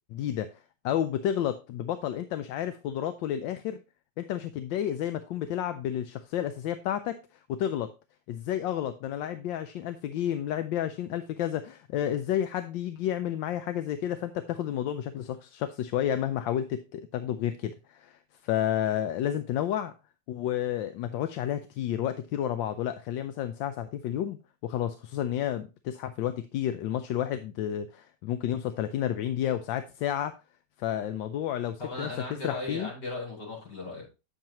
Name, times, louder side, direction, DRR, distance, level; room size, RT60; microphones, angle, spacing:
voice 1, 0.1-0.5 0.8-3.8 4.2-7.2 7.5-7.9 8.3-19.9 20.3-30.4 30.8-32.9, left 10 dB, 85° left, 10 dB, 1.3 m, -31 dB
voice 2, 31.8-34.1, left 2 dB, 65° left, -3 dB, 5.4 m, -37 dB
9.1 x 7.4 x 2.9 m, 0.29 s
omnidirectional pair, 2.0 m